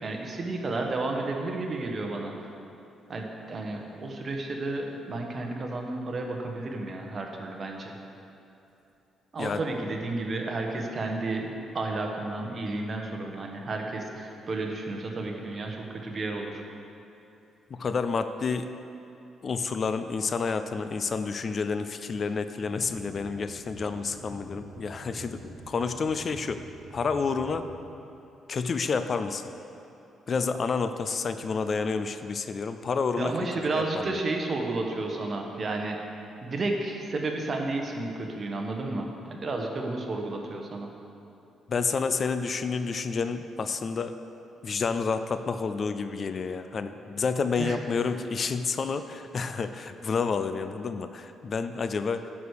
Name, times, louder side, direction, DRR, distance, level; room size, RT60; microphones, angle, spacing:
voice 1, 0.0-2.3 3.1-7.9 9.3-16.6 33.2-36.0 36.4-40.9 47.5-47.8, right 2 dB, 40° right, 2 dB, 1.2 m, -32 dB
voice 2, 17.7-18.7 19.4-26.6 26.9-27.7 28.5-29.4 30.3-33.3 33.7-34.2 41.7-44.1 44.6-52.3, left 5 dB, 45° left, 10 dB, 0.4 m, -29 dB
sound 1, 22.8-27.7, right 2 dB, 70° right, 1.5 m, -46 dB
10.0 x 4.9 x 6.5 m, 2.9 s
cardioid pair, 90°, 0 cm